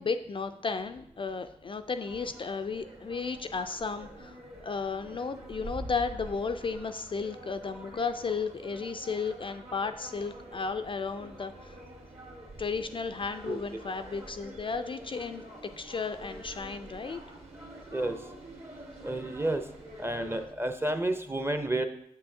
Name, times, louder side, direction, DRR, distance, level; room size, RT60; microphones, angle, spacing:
voice 1, 0.0-11.8 12.6-15.4 15.8-17.2, left 5 dB, 40° left, 8 dB, 0.3 m, -34 dB
sound 1, 2.0-20.5, right 1 dB, 50° right, 1.9 m, -47 dB
voice 2, 19.0-19.6 20.0-21.9, right 1 dB, 15° right, 7 dB, 0.7 m, -30 dB
6.6 x 5.5 x 2.7 m, 0.75 s
supercardioid pair, 45°, 14 cm